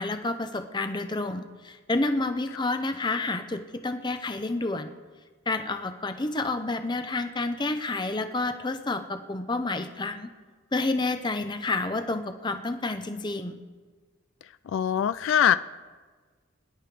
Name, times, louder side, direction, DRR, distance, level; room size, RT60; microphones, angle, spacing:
voice 1, 0.0-4.9 5.5-10.3 10.7-13.6, left 2 dB, 20° left, 8 dB, 0.7 m, -29 dB
voice 2, 14.7-15.6, left 9 dB, 75° left, 14 dB, 0.3 m, -22 dB
22.0 x 11.0 x 3.4 m, 1.4 s
head